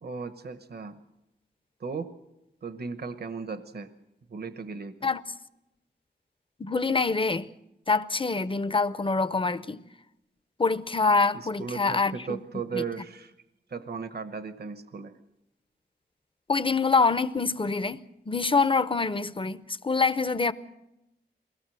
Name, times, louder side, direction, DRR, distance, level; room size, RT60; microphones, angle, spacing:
voice 1, 0.0-1.0 1.8-2.1 2.6-3.9 4.3-5.1 11.3-13.3 13.7-15.2, right 5 dB, 60° right, 1.0 m, -36 dB
voice 2, 6.6-7.5 7.9-9.8 10.6-12.4 12.7-12.8 16.5-20.5, left 4 dB, 30° left, 0.7 m, -25 dB
22.5 x 17.5 x 7.7 m
wide cardioid pair, 90°, 18 cm